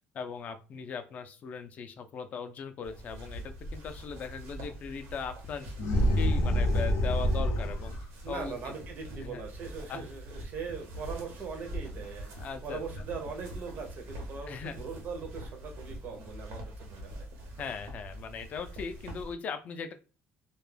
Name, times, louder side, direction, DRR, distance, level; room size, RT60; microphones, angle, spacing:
voice 1, 0.1-5.7 6.2-7.9 8.3-8.7 9.1-9.5 9.9-10.0 12.3-12.8 14.5-14.8 17.6-19.9, left 6 dB, 35° left, 8 dB, 0.3 m, -39 dB
sound 1, 2.8-19.3, right 1 dB, 85° right, 0.7 m, -44 dB
sound 2, 5.8-8.0, equal, 85° left, 0.5 m, -26 dB
voice 2, 8.2-17.3, right 5 dB, 40° right, 4 dB, 0.5 m, -41 dB
2.2 x 2.1 x 3.2 m, 0.33 s
cardioid pair, 180°, 4 cm